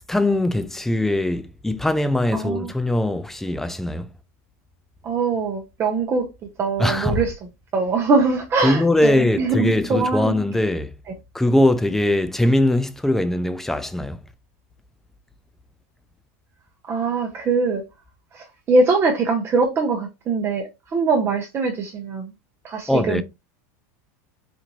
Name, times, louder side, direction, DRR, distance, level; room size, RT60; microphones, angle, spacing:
voice 1, 0.1-4.1 6.8-7.2 8.6-10.9 11.3-14.2 22.9-23.2, left 1 dB, 5° left, 0.3 m, -21 dB
voice 2, 2.3-2.7 5.0-6.3 6.6-7.3 7.7-10.3 16.9-17.8 18.3-22.3 22.6-23.2, right 4 dB, 30° right, 0.8 m, -22 dB
4.3 x 2.5 x 2.9 m
supercardioid pair, 130°, 9 cm